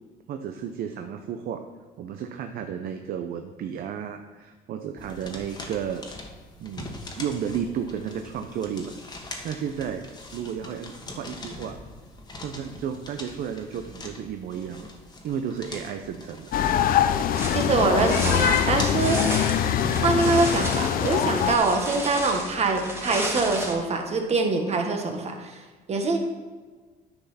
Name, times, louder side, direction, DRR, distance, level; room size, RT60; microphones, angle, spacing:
voice 1, 0.3-1.6 2.0-6.0 6.6-9.0 9.4-10.1 10.3-11.7 12.4-14.9 15.2-16.5, right 8 dB, 65° right, 6 dB, 0.6 m, -33 dB
sound 1, 5.0-20.0, left 2 dB, 25° left, 1.4 m, -42 dB
sound 2, 16.5-21.6, left 9 dB, 60° left, 0.5 m, -23 dB
sound 3, 17.4-23.7, right 1 dB, 15° right, 1.8 m, -33 dB
voice 2, 17.5-19.2 20.0-25.6 25.9-26.2, right 3 dB, 40° right, 4 dB, 1.3 m, -24 dB
9.7 x 6.0 x 4.2 m, 1.4 s
cardioid pair, 110°, 17 cm